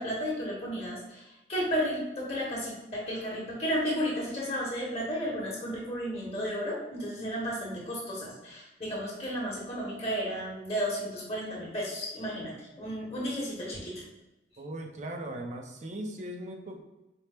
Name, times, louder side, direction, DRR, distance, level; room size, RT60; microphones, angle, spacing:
voice 1, 0.0-14.0, equal, 35° left, -4 dB, 1.0 m, -33 dB
voice 2, 14.6-16.8, right 1 dB, 40° right, 3 dB, 0.5 m, -38 dB
4.3 x 2.0 x 3.3 m, 0.99 s
head